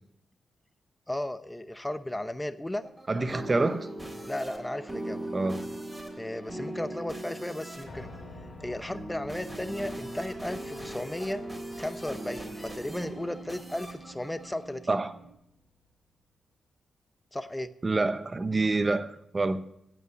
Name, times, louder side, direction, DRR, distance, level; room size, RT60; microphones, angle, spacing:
voice 1, 1.1-2.8 4.3-5.3 6.2-8.1 8.6-11.4 11.8-15.0 17.3-17.7, left 1 dB, 10° left, 0.8 m, -35 dB
sound 1, 2.8-15.3, right 1 dB, 15° right, 3.5 m, -40 dB
voice 2, 3.1-3.9 5.3-5.6 14.9-15.2 17.8-19.6, right 3 dB, 35° right, 0.8 m, -27 dB
Piano, 7.9-15.9, left 3 dB, 55° left, 2.1 m, -51 dB
16.5 x 5.6 x 8.4 m
cardioid pair, 60°, 0 cm